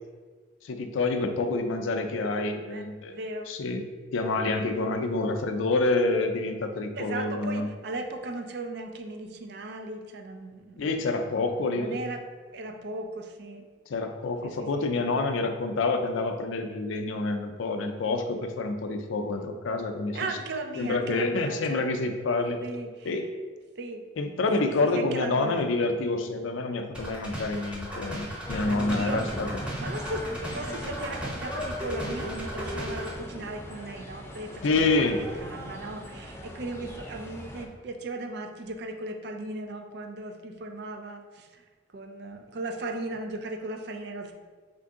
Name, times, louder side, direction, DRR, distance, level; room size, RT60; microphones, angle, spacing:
voice 1, 0.6-3.1 3.5-3.8 4.1-7.7 10.8-12.0 13.9-20.3 20.8-22.6 23.1-23.3 24.2-29.5 34.6-35.2, left 3 dB, 85° left, 6 dB, 0.4 m, -27 dB
voice 2, 2.7-3.5 6.9-10.9 11.8-12.2 12.5-13.7 14.4-15.4 20.1-21.9 22.6-23.2 23.8-24.1 24.6-25.6 28.5-29.2 29.8-41.6 41.9-44.3, right 2 dB, 60° right, 6 dB, 0.4 m, -37 dB
sound 1, 26.9-33.2, equal, 5° right, 0.8 m, -37 dB
sound 2, 28.4-37.7, equal, 15° left, 0.3 m, -39 dB
4.4 x 2.6 x 3.6 m, 1.4 s
head